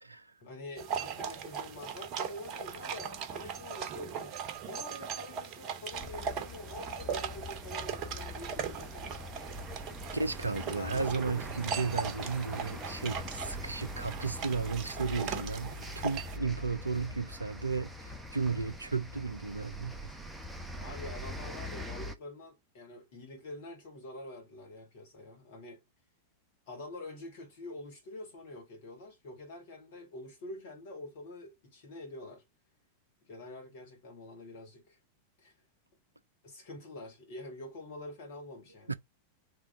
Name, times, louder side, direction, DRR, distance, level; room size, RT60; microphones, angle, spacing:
voice 1, 0.4-4.4 4.6-9.2 10.7-11.0 20.8-25.8 26.7-32.4 33.2-35.0 35.4-35.5 36.4-39.0, left 2 dB, 55° left, 2.5 m, -46 dB
sound 1, 0.8-16.4, right 7 dB, 40° right, 0.9 m, -39 dB
sound 2, 5.9-22.2, left 1 dB, ahead, 0.8 m, -43 dB
voice 2, 10.1-20.1 38.9-39.0, right 4 dB, 80° right, 0.5 m, -34 dB
3.6 x 3.2 x 3.7 m
figure-of-eight pair, 90°, 0 cm